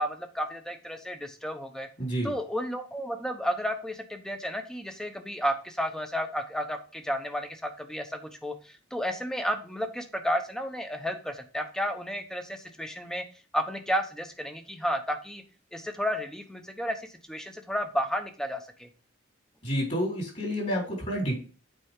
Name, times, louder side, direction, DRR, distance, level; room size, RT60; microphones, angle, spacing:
voice 1, 0.0-1.9 2.2-13.2 13.5-15.4 15.7-18.9, equal, 5° left, 6 dB, 0.9 m, -32 dB
voice 2, 2.0-2.3 19.6-21.4, equal, 40° left, -3 dB, 3.9 m, -29 dB
8.3 x 4.4 x 3.7 m, 0.37 s
head